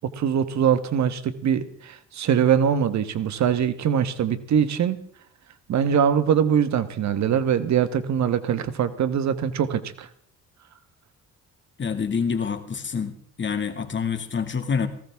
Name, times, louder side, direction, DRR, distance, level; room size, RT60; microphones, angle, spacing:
voice 1, 0.2-5.0 5.7-10.1, right 8 dB, 65° right, 11 dB, 1.3 m, -22 dB
voice 2, 11.8-13.1 13.4-14.9, left 6 dB, 40° left, 8 dB, 2.0 m, -26 dB
18.5 x 16.0 x 3.5 m, 0.63 s
cardioid pair, 90°, 30 cm